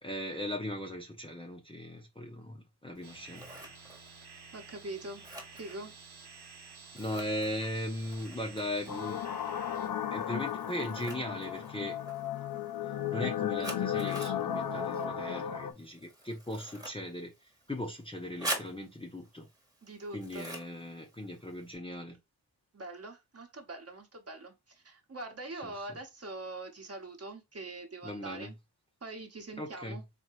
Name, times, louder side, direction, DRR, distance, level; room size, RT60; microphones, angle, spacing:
voice 1, 0.0-3.5 6.9-9.2 10.1-12.0 13.1-17.3 17.7-19.5 20.1-22.2 25.6-25.9 28.0-28.5 29.6-30.0, left 1 dB, 15° left, 0.6 m, -38 dB
Scissors, 3.0-21.7, right 1 dB, 10° right, 1.0 m, -47 dB
sound 1, 3.0-9.9, right 4 dB, 70° right, 0.9 m, -52 dB
voice 2, 4.5-5.2 5.5-6.0 19.8-20.5 22.7-28.6 29.0-30.0, right 2 dB, 35° right, 1.0 m, -43 dB
sound 2, 8.9-15.7, left 9 dB, 55° left, 0.6 m, -34 dB
4.2 x 2.8 x 3.0 m
wide cardioid pair, 140°, 41 cm